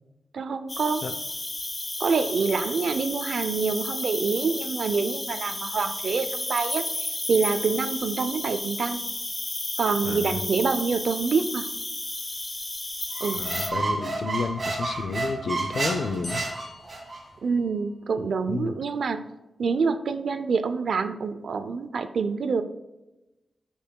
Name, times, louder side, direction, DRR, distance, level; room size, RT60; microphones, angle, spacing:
voice 1, 0.3-1.1 2.0-6.8 7.3-9.0 9.8-11.7 13.2-13.5 17.4-19.2 19.6-22.6, right 5 dB, 65° right, 10 dB, 0.5 m, -26 dB
Cricket, 0.7-13.7, left 2 dB, 20° left, 0.6 m, -32 dB
voice 2, 10.0-10.4 13.3-16.4 18.2-18.8, left 4 dB, 65° left, 10 dB, 0.5 m, -31 dB
Squeak, 13.1-17.2, right 2 dB, 35° right, 1.5 m, -30 dB
sound 1, 16.2-18.1, left 2 dB, 45° left, 1.6 m, -44 dB
13.0 x 5.5 x 2.3 m, 1.0 s
wide cardioid pair, 155°, 0 cm